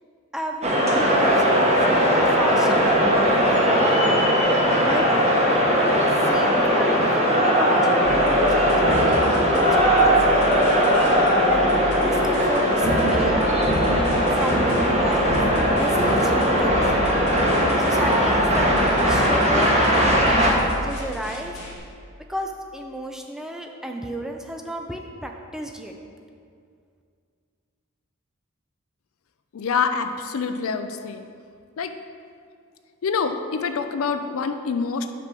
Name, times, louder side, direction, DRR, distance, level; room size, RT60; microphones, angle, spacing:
voice 1, 0.3-4.1 4.8-5.1 5.5-10.4 11.5-13.5 14.3-15.4 15.7-16.9 17.8-18.7 19.0-21.6 22.3-25.9, right 1 dB, ahead, 3 dB, 0.4 m, -32 dB
sound 1, 0.6-20.5, equal, 30° right, 1.0 m, -19 dB
sound 2, 8.0-21.8, left 2 dB, 90° left, 1.5 m, -36 dB
voice 2, 29.5-31.3 31.8-31.9 33.0-35.1, left 5 dB, 70° left, 8 dB, 0.4 m, -26 dB
5.9 x 4.5 x 6.1 m, 2.3 s
head